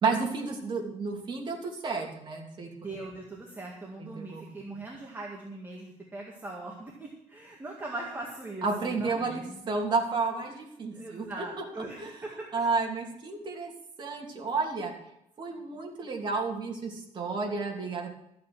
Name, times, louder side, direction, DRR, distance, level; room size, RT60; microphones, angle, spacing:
voice 1, 0.0-2.7 4.0-4.4 8.6-9.4 9.7-11.4 12.0-12.1 12.5-13.7 14.0-14.9 15.4-18.1, right 4 dB, 35° right, 0 dB, 2.9 m, -31 dB
voice 2, 2.8-9.7 10.5-10.6 10.9-12.5, right 2 dB, 15° right, -2 dB, 2.0 m, -40 dB
13.5 x 8.6 x 6.2 m, 0.82 s
cardioid pair, 165°, 13 cm